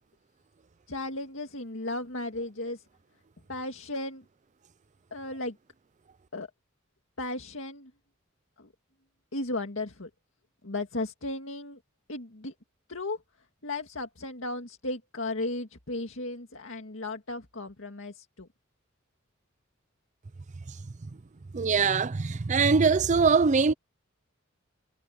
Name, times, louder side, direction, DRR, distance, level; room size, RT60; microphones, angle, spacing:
voice 1, 0.9-2.8 3.5-4.2 5.1-5.6 6.3-6.5 7.2-7.9 8.6-8.7 9.3-10.1 10.6-11.8 12.1-12.5 12.9-13.2 13.6-18.5, left 2 dB, 75° left, 2.1 m, -35 dB
voice 2, 21.5-23.7, right 5 dB, 35° right, 0.5 m, -22 dB
head